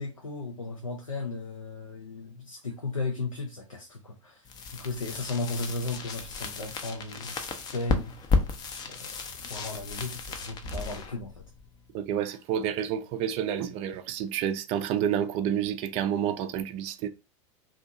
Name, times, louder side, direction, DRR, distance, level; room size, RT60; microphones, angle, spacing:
voice 1, 0.0-8.2 8.9-9.2 9.5-11.5, left 3 dB, 90° left, 0.4 m, -35 dB
sound 1, 4.4-12.2, left 4 dB, 25° left, 0.5 m, -33 dB
voice 2, 11.9-17.1, right 9 dB, 40° right, 0.4 m, -29 dB
2.6 x 2.4 x 2.5 m
figure-of-eight pair, 85°, 17 cm